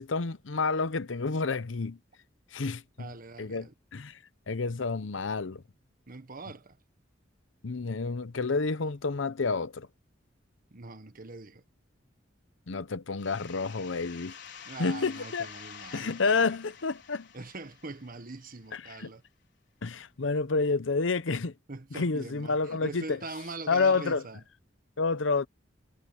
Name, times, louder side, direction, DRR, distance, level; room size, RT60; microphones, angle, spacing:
voice 1, 0.0-2.0 2.5-3.1 3.4-4.2 4.5-5.6 7.6-9.9 12.7-14.3 14.8-15.5 15.9-17.3 18.8-19.1 19.8-21.5 21.9-23.2 23.7-24.2 25.0-25.5, left 4 dB, 90° left, 0.8 m, -29 dB
voice 2, 3.0-3.7 6.1-6.8 10.7-11.6 14.6-16.6 17.3-19.2 21.7-24.4, right 3 dB, 50° right, 1.4 m, -43 dB
sound 1, 13.2-18.7, left 7 dB, 65° left, 5.1 m, -48 dB
head